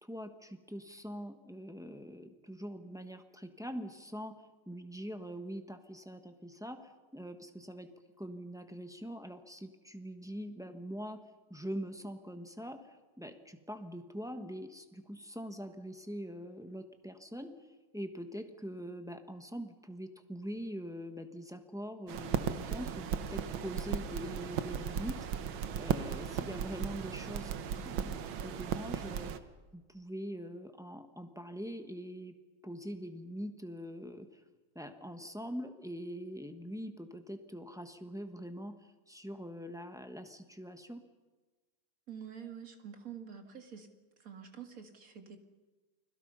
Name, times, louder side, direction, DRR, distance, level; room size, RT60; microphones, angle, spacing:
voice 1, 0.0-7.9 8.2-11.2 11.5-25.2 25.8-27.5 27.8-29.4 29.7-32.4 32.6-34.4 34.7-41.0, equal, ahead, 0.9 m, -43 dB
sound 1, 22.1-29.4, right 8 dB, 70° right, 1.7 m, -36 dB
voice 2, 42.1-43.9 44.2-45.4, right 8 dB, 40° right, 2.2 m, -47 dB
30.0 x 21.5 x 5.6 m
omnidirectional pair, 2.3 m